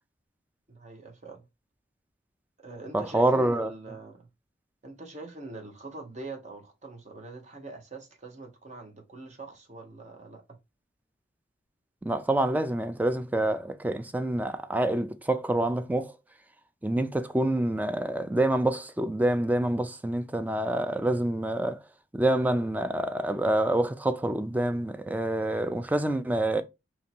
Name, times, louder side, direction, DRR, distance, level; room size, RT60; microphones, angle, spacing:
voice 1, 0.7-1.4 2.6-4.3 4.8-10.4, right 3 dB, 40° right, 0.9 m, -43 dB
voice 2, 2.9-3.7 12.0-16.1 16.8-21.8 22.1-26.6, right 1 dB, 10° right, 0.3 m, -27 dB
2.9 x 2.7 x 4.3 m
head